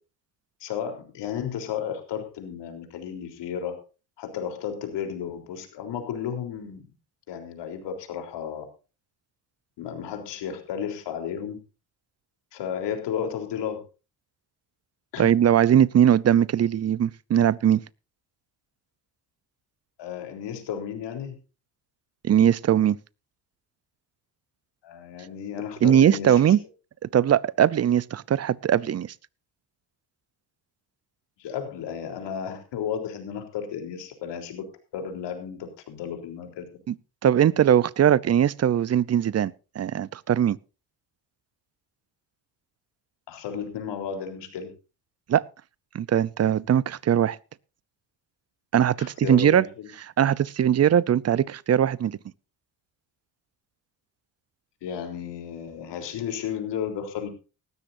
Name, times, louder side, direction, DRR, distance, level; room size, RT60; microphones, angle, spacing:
voice 1, 0.6-3.8 4.2-6.9 7.3-8.7 9.8-11.6 12.5-13.8 15.1-15.4 20.0-21.4 24.8-26.6 31.4-34.6 34.9-36.6 43.3-44.7 49.0-49.9 54.8-57.3, left 8 dB, 80° left, 3.8 m, -33 dB
voice 2, 15.2-17.8 22.2-23.0 25.8-26.6 27.1-29.1 36.9-37.0 37.2-40.6 45.3-45.4 45.9-47.4 48.7-49.7 50.2-52.2, right 9 dB, 35° right, 0.7 m, -20 dB
18.0 x 13.5 x 2.7 m
cardioid pair, 95°, 42 cm